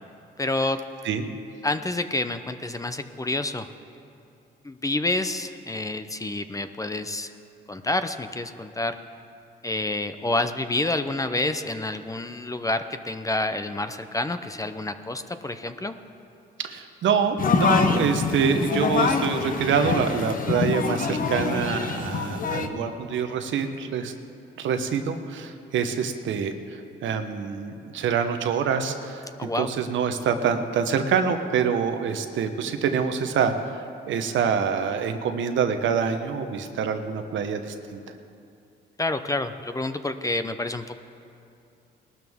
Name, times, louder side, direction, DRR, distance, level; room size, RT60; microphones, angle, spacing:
voice 1, 0.4-0.8 1.6-3.7 4.6-7.3 7.7-9.0 9.6-15.9 29.4-29.7 39.0-40.9, left 2 dB, 15° left, 9 dB, 0.6 m, -28 dB
voice 2, 16.6-24.1 24.6-38.0, right 6 dB, 75° right, 7 dB, 1.0 m, -26 dB
sound 1, 17.4-22.7, left 5 dB, 45° left, 1.0 m, -25 dB
19.5 x 12.5 x 3.6 m, 2.6 s
cardioid pair, 90°, 20 cm